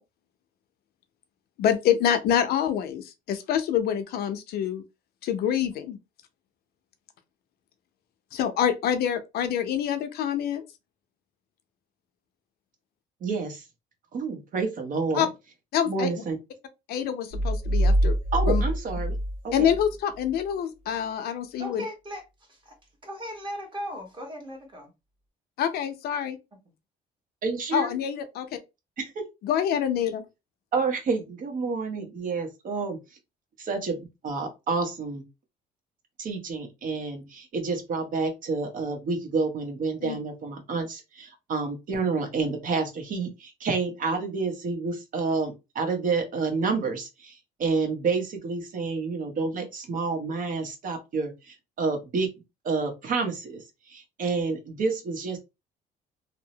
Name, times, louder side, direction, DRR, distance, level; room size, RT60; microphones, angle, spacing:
voice 1, 1.6-4.8 5.2-6.0 8.3-10.6 15.1-15.3 15.7-16.1 16.9-18.1 18.4-18.6 19.5-21.9 25.6-26.4 27.7-28.6 29.4-30.2 40.0-40.2, left 9 dB, 70° left, 0.5 m, -26 dB
voice 2, 13.2-13.6 14.1-15.3 15.9-16.4 18.3-19.2 19.4-19.7 27.4-27.9 29.0-29.2 30.7-33.0 33.6-35.2 36.2-52.3 52.6-55.4, right 4 dB, 55° right, 0.9 m, -29 dB
sound 1, 17.3-19.9, right 1 dB, 80° right, 1.1 m, -25 dB
voice 3, 21.6-22.2 22.5-22.7 23.0-24.9, equal, 30° right, 1.2 m, -37 dB
2.8 x 2.0 x 2.7 m
cardioid pair, 110°, 17 cm